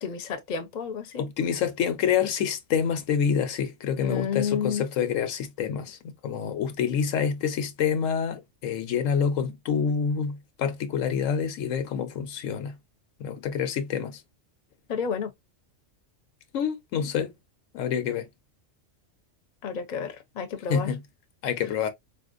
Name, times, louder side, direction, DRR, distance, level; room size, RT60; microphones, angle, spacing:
voice 1, 0.0-1.2 4.0-4.9 14.9-15.3 19.6-20.9, left 6 dB, 45° left, 0.7 m, -30 dB
voice 2, 1.2-12.8 13.2-14.2 16.5-17.3 17.7-18.2 20.7-21.0 21.4-21.9, left 7 dB, 85° left, 1.0 m, -27 dB
4.1 x 2.5 x 2.4 m
omnidirectional pair, 1.3 m